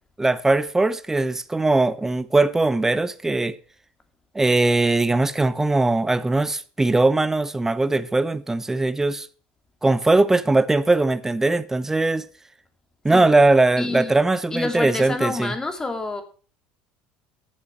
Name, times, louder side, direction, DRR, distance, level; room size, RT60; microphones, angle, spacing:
voice 1, 0.2-3.6 4.3-9.3 9.8-12.3 13.0-15.5, right 2 dB, 10° right, 0.9 m, -20 dB
voice 2, 13.8-14.2 14.5-16.2, left 3 dB, 15° left, 2.6 m, -28 dB
11.0 x 7.2 x 6.8 m
supercardioid pair, 100°, 4 cm